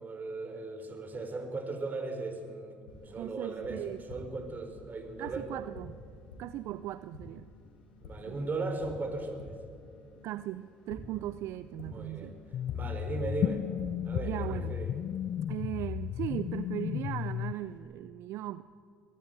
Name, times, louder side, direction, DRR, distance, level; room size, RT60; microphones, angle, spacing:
voice 1, 0.0-5.6 8.0-9.5 11.9-12.3 12.7-13.7 14.0-14.9, right 3 dB, 35° right, 7 dB, 4.4 m, -37 dB
Tap, 2.9-17.8, left 2 dB, 90° left, 3.2 m, -50 dB
voice 2, 3.2-4.0 5.2-6.0 6.4-7.5 8.3-8.4 10.2-12.4 14.1-14.8 15.5-18.6, right 14 dB, 65° right, 15 dB, 0.5 m, -38 dB
sound 1, 12.5-17.5, left 10 dB, 55° left, 0.5 m, -34 dB
22.5 x 15.0 x 9.1 m, 2.4 s
hypercardioid pair, 60°, 5 cm